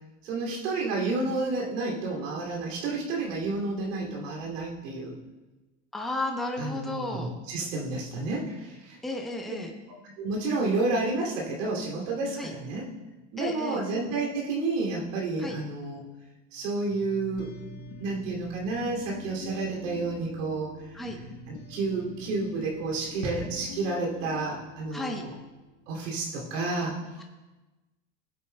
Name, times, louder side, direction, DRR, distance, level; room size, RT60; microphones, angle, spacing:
voice 1, 0.2-5.2 6.6-9.0 9.5-9.6 10.2-12.9 13.3-16.0 16.5-17.5 18.0-25.3 25.9-26.9, right 3 dB, 90° right, -3 dB, 2.7 m, -30 dB
voice 2, 5.9-7.3 9.0-9.7 12.4-12.5 13.4-13.8 15.4-15.6 20.9-21.2 24.9-25.2, left 1 dB, ahead, 2 dB, 0.7 m, -33 dB
sound 1, 16.9-25.6, left 3 dB, 60° left, 1.5 m, -45 dB
17.5 x 8.3 x 2.2 m, 1.2 s
supercardioid pair, 120°, 37 cm